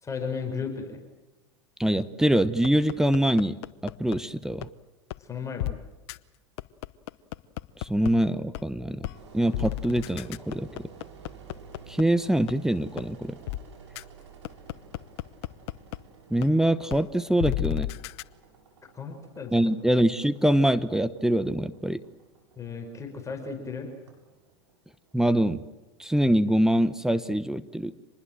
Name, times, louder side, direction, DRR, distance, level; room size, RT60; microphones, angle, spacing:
voice 1, 0.0-1.0 5.2-5.8 18.9-19.5 22.6-23.9, left 5 dB, 20° left, 4 dB, 5.4 m, -35 dB
voice 2, 1.8-3.5 3.8-4.7 7.8-9.1 9.3-10.9 11.9-13.4 16.3-17.9 19.5-22.0 25.1-25.6 26.0-27.9, right 1 dB, 5° right, 13 dB, 1.0 m, -24 dB
sound 1, 2.6-4.2 4.6-4.7 5.1-5.2 5.6-5.7 6.1-6.2 6.6-8.1 8.5-8.6 9.0-9.2 9.5-12.0 12.5-12.6 13.0-13.1 13.5-13.6 14.0-14.1 14.4-16.0 16.4-16.5 16.9-17.0 17.4-18.2, left 16 dB, 65° left, 0.9 m, -32 dB
Engine, 9.1-26.0, right 5 dB, 80° right, 7.3 m, -52 dB
26.5 x 20.5 x 7.7 m, 1.1 s
hypercardioid pair, 105°, 15 cm